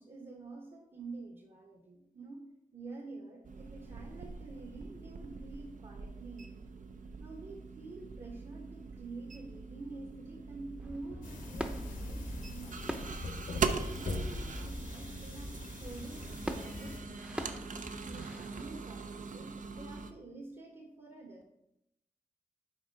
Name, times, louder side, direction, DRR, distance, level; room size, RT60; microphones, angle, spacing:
voice 1, 0.0-2.4 2.7-6.7 7.2-13.2 13.6-17.5 18.0-21.4, right 3 dB, 50° right, 1 dB, 1.1 m, -48 dB
sound 1, 3.4-20.1, right 4 dB, 65° right, 0.5 m, -42 dB
sound 2, 10.8-18.7, equal, 5° right, 0.7 m, -45 dB
sound 3, 11.2-17.0, left 2 dB, 70° left, 1.0 m, -42 dB
6.4 x 4.4 x 4.5 m, 0.83 s
cardioid pair, 55°, 14 cm